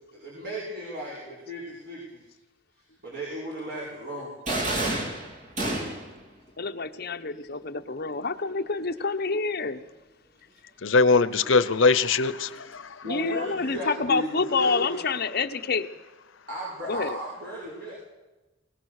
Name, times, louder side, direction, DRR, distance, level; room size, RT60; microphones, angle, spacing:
voice 1, 0.1-2.2 3.0-4.3 13.0-15.0 16.5-17.9, equal, 55° right, -6 dB, 5.7 m, -35 dB
sound 1, 4.5-6.2, right 1 dB, 40° right, 3.6 m, -29 dB
voice 2, 6.6-9.8 13.0-15.9 16.9-17.2, left 4 dB, 50° left, 5 dB, 1.0 m, -28 dB
voice 3, 10.8-12.9, left 4 dB, 75° left, 15 dB, 0.9 m, -21 dB
21.5 x 18.5 x 6.6 m, 1.1 s
head